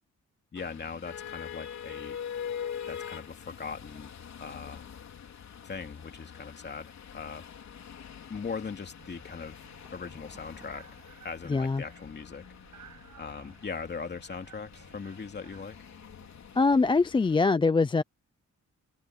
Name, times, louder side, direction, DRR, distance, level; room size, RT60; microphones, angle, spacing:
voice 1, 0.5-2.2 2.9-4.8 5.6-7.5 8.3-9.6 9.9-10.8 11.2-12.4 13.2-15.8, left 5 dB, 35° left, 2.6 m, -40 dB
sound 1, 0.6-17.4, left 8 dB, 60° left, 3.6 m, -44 dB
sound 2, 9.0-17.1, right 9 dB, 75° right, 6.6 m, -57 dB
sound 3, 9.4-15.7, right 1 dB, 10° right, 6.8 m, -65 dB
voice 2, 11.5-11.8 16.6-18.0, left 4 dB, 15° left, 0.4 m, -23 dB
wide cardioid pair, 155°, 31 cm